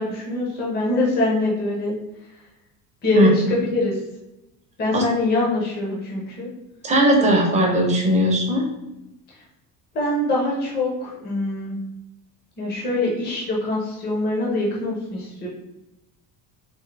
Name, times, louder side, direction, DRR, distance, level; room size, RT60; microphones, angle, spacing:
voice 1, 0.0-2.4 3.0-4.0 4.8-6.5 9.3-9.4 9.9-11.8 12.6-15.5, left 2 dB, 25° left, -4 dB, 0.8 m, -24 dB
voice 2, 6.8-8.7, right 1 dB, 20° right, 0 dB, 0.7 m, -18 dB
3.6 x 2.7 x 3.3 m, 0.94 s
cardioid pair, 155°, 37 cm